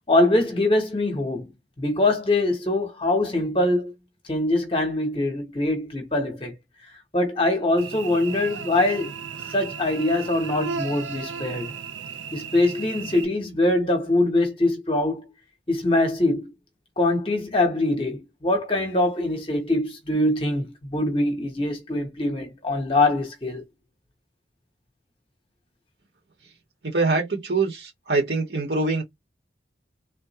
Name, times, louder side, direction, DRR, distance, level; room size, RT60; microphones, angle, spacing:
voice 1, 0.1-3.9 4.3-6.6 7.1-9.1 9.5-11.7 12.3-15.3 15.7-16.5 17.0-23.7, left 2 dB, 30° left, 0.8 m, -23 dB
Cricket / Buzz, 7.8-13.3, right 6 dB, 85° right, 0.5 m, -35 dB
voice 2, 26.8-29.0, right 3 dB, 65° right, 1.7 m, -24 dB
3.3 x 2.4 x 2.9 m
head